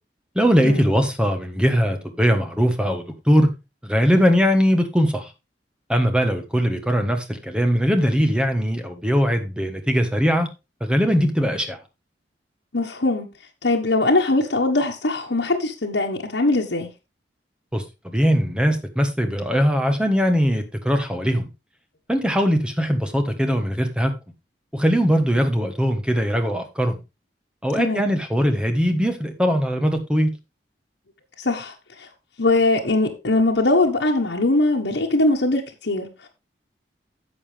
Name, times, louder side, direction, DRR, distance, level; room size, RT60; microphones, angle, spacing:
voice 1, 0.3-3.5 3.8-5.3 5.9-10.5 10.8-11.8 17.7-21.5 22.1-24.1 24.7-26.9 27.6-30.3, equal, 5° right, 1.3 m, -20 dB
voice 2, 12.7-13.3 13.6-16.9 27.8-28.0 31.4-32.1 32.4-36.3, left 2 dB, 80° left, 1.4 m, -21 dB
11.0 x 7.2 x 3.4 m
head